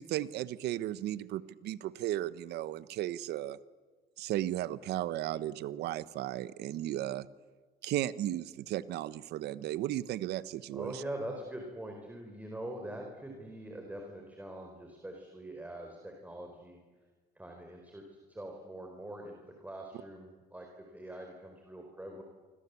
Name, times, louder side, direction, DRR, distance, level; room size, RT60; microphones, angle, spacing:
voice 1, 0.0-3.6 4.2-7.3 7.8-11.0, right 13 dB, 75° right, 16 dB, 1.1 m, -35 dB
voice 2, 10.7-16.8 17.3-20.7 20.9-22.2, right 1 dB, 10° right, 2 dB, 4.7 m, -43 dB
28.5 x 25.0 x 8.5 m, 1.4 s
cardioid pair, 110°, 17 cm